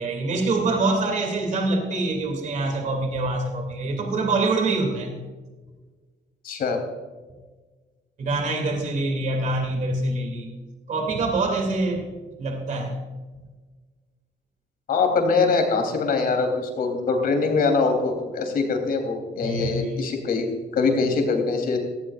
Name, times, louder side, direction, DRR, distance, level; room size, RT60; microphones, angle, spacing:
voice 1, 0.0-5.1 8.2-10.5 10.9-12.0 12.4-13.0 19.4-20.0, right 2 dB, 45° right, 3 dB, 2.6 m, -25 dB
voice 2, 6.4-6.8 14.9-20.5 20.7-21.8, left 4 dB, 55° left, 4 dB, 3.2 m, -23 dB
17.5 x 16.0 x 2.5 m, 1.3 s
cardioid pair, 175°, 18 cm